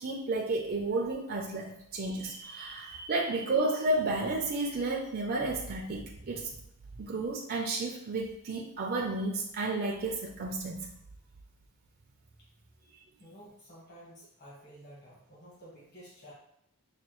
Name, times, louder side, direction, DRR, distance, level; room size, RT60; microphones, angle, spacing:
voice 1, 0.0-6.5 7.0-10.9, right 2 dB, 45° right, -1 dB, 0.5 m, -32 dB
voice 2, 13.2-16.3, equal, 50° left, -6 dB, 1.5 m, -52 dB
5.7 x 2.3 x 3.0 m, 0.77 s
head